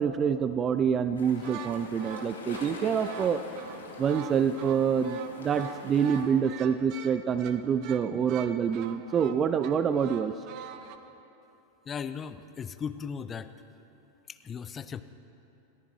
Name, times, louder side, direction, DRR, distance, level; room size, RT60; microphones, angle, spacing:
voice 1, 0.0-3.4 4.0-10.3, right 7 dB, 25° right, 12 dB, 0.4 m, -26 dB
sound 1, 1.1-6.2, left 3 dB, 70° left, 2.2 m, -43 dB
sound 2, 1.3-11.0, right 9 dB, 40° right, 0.8 m, -44 dB
voice 2, 11.8-13.5 14.3-15.0, left 7 dB, 20° left, 12 dB, 0.6 m, -37 dB
28.0 x 14.5 x 3.1 m, 2.9 s
figure-of-eight pair, 90°, 0 cm